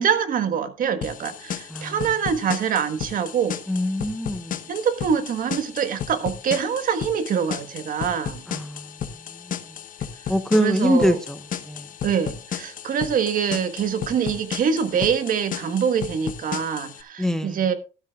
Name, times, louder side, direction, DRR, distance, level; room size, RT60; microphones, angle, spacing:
voice 1, 0.0-3.6 4.7-8.4 10.5-11.2 12.0-17.7, right 7 dB, 55° right, 1.4 m, -24 dB
sound 1, 1.0-17.0, left 8 dB, 50° left, 1.1 m, -34 dB
voice 2, 3.7-4.6 8.5-8.9 10.3-11.4 11.7-11.9 17.2-17.6, equal, 5° left, 0.8 m, -23 dB
13.5 x 12.5 x 2.4 m
cardioid pair, 110°, 17 cm